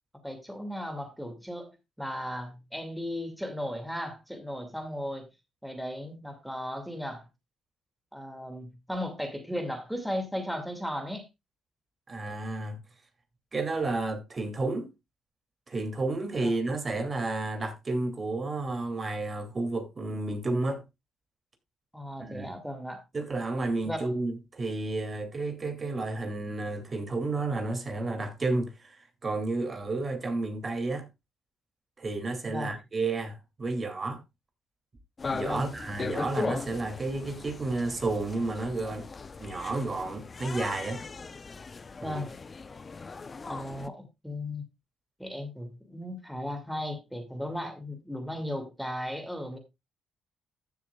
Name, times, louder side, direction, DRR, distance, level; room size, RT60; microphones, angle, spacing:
voice 1, 0.2-1.7 2.0-5.3 5.6-7.3 8.1-11.3 16.4-16.5 21.9-23.0 23.8-24.1 32.5-32.8 35.4-35.7 42.0-42.3 43.5-44.6 45.2-49.6, equal, ahead, 2.2 m, -36 dB
voice 2, 12.1-12.8 13.5-14.9 15.7-20.8 22.2-22.5 23.1-29.0 29.2-31.1 32.0-34.2 35.3-39.1 39.4-41.0 42.0-42.2, right 2 dB, 35° right, 2.6 m, -31 dB
sound 1, 35.2-43.9, left 4 dB, 35° left, 0.7 m, -38 dB
15.0 x 7.2 x 2.3 m
cardioid pair, 90°, 0 cm